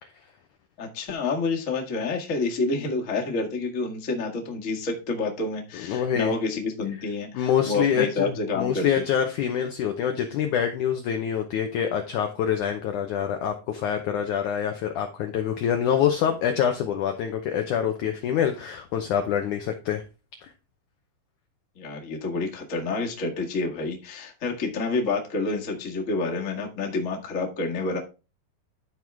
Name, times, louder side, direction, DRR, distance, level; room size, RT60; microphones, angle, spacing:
voice 1, 0.8-9.0 21.7-28.0, left 3 dB, 45° left, 0 dB, 1.0 m, -28 dB
voice 2, 5.8-6.3 7.3-20.0, left 8 dB, 85° left, 5 dB, 1.7 m, -26 dB
12.5 x 4.7 x 3.5 m, 0.30 s
omnidirectional pair, 4.7 m